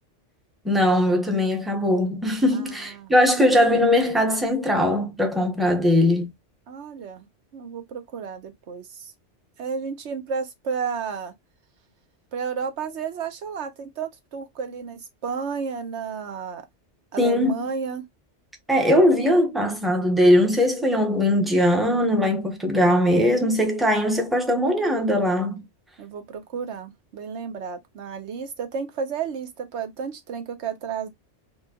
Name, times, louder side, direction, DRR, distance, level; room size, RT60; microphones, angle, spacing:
voice 1, 0.6-6.3 17.2-17.7 18.7-25.6, left 1 dB, ahead, 0.7 m, -20 dB
voice 2, 2.5-3.1 6.7-7.3 7.5-9.1 9.6-11.3 12.3-16.6 17.1-18.0 26.0-31.1, right 6 dB, 70° right, 1.1 m, -32 dB
4.3 x 2.4 x 2.8 m
omnidirectional pair, 1.2 m